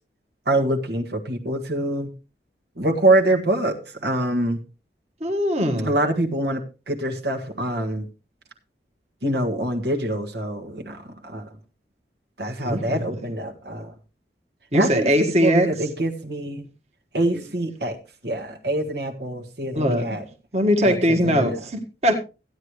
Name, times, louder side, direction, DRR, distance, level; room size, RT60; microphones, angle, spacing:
voice 1, 0.4-2.1 2.8-4.6 5.8-8.1 9.2-11.5 12.4-13.9 14.7-16.7 17.1-18.0 18.2-20.2 20.8-21.6, right 1 dB, 70° right, 2 dB, 1.6 m, -25 dB
voice 2, 5.2-5.9 12.6-13.0 14.7-15.7 19.7-20.2 20.5-22.2, equal, 35° right, 3 dB, 1.6 m, -21 dB
15.0 x 9.8 x 3.2 m, 0.30 s
head